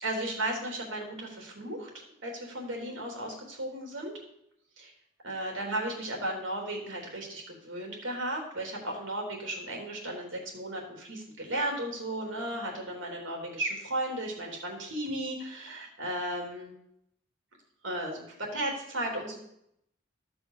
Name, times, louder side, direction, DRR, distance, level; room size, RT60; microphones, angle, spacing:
voice 1, 0.0-4.1 4.8-4.9 5.2-16.7 17.8-19.4, right 1 dB, 90° right, 0 dB, 3.6 m, -35 dB
13.5 x 6.2 x 6.8 m, 0.75 s
head